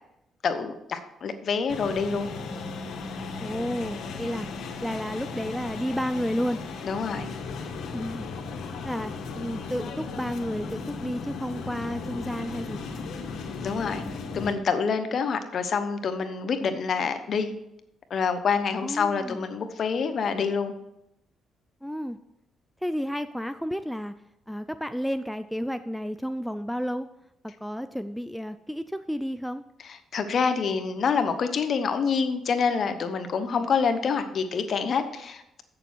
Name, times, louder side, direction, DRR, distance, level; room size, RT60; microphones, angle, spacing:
voice 1, 0.4-2.3 6.8-7.3 13.6-14.0 14.3-17.5 18.1-20.7 29.8-35.6, left 5 dB, 55° left, 8 dB, 1.0 m, -27 dB
sound 1, 1.7-14.5, left 4 dB, 70° left, 1.2 m, -36 dB
voice 2, 3.4-4.5 4.8-6.6 7.9-8.3 8.8-13.2 18.8-19.5 21.8-22.2 22.8-24.1 24.5-27.1 27.6-29.6 33.5-33.6, equal, ahead, 10 dB, 0.4 m, -31 dB
8.1 x 6.8 x 6.0 m, 0.84 s
cardioid pair, 90°, 0 cm